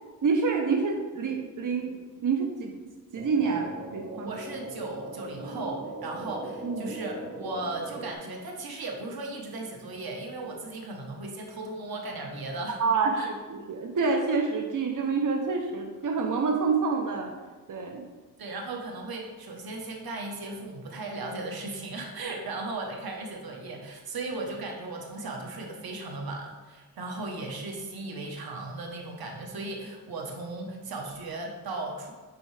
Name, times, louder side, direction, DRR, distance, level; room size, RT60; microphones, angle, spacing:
voice 1, 0.2-2.7 3.1-3.7 3.9-4.3 6.6-6.9 12.8-17.3 17.7-18.1, right 4 dB, 60° right, 2 dB, 0.7 m, -27 dB
sound 1, 3.1-8.1, right 2 dB, 40° right, 1.6 m, -40 dB
voice 2, 4.1-12.8 13.2-13.3 18.4-32.1, right 2 dB, 90° right, 1 dB, 1.1 m, -36 dB
8.4 x 4.5 x 3.3 m, 1.3 s
cardioid pair, 80°, 35 cm